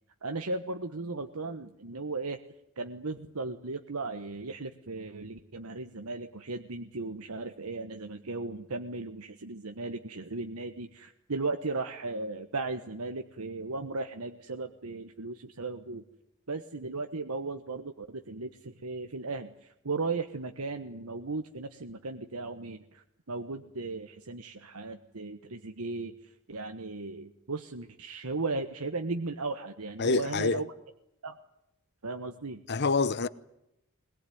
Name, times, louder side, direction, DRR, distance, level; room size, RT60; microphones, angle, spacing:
voice 1, 0.2-2.4 2.8-16.0 16.5-30.7 31.2-31.3 32.0-32.6, right 3 dB, 80° right, 1.3 m, -36 dB
voice 2, 30.0-30.6 32.7-33.3, left 3 dB, 50° left, 1.0 m, -26 dB
22.0 x 21.0 x 9.4 m
head